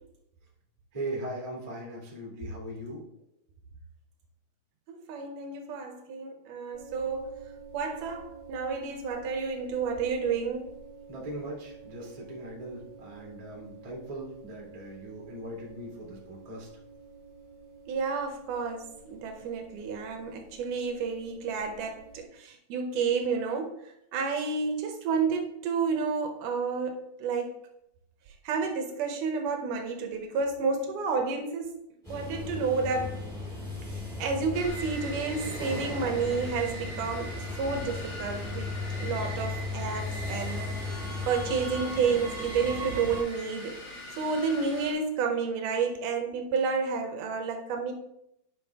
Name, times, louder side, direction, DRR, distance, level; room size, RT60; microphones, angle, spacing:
voice 1, 0.9-3.1 11.1-16.7, right 1 dB, 55° right, -3 dB, 0.4 m, -39 dB
voice 2, 4.9-7.4 7.7-10.7 17.9-23.8 24.1-27.5 28.4-31.8 32.1-33.2 33.9-38.7 39.0-41.0 41.3-43.8 44.2-47.9, right 5 dB, 75° right, 4 dB, 1.9 m, -30 dB
sound 1, 6.7-22.2, right 5 dB, 75° left, 4.6 m, -50 dB
subway departs, 32.0-43.2, left 2 dB, 10° left, 2.2 m, -36 dB
sound 2, 34.5-44.9, equal, 50° left, 4.3 m, -42 dB
10.5 x 5.5 x 3.5 m, 0.81 s
omnidirectional pair, 4.6 m